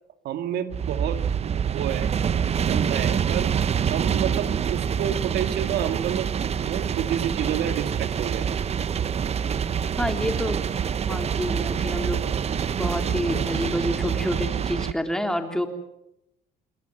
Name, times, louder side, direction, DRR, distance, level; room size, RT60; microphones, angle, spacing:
voice 1, 0.2-2.1 2.6-3.5 3.9-6.3 6.6-8.5, right 10 dB, 75° right, 9 dB, 2.0 m, -29 dB
sound 1, 0.7-14.9, right 7 dB, 40° right, 0.9 m, -26 dB
voice 2, 10.0-10.6 11.0-12.2 12.8-15.7, equal, 5° left, 5 dB, 3.4 m, -28 dB
28.0 x 21.0 x 7.9 m, 0.85 s
cardioid pair, 110°, 17 cm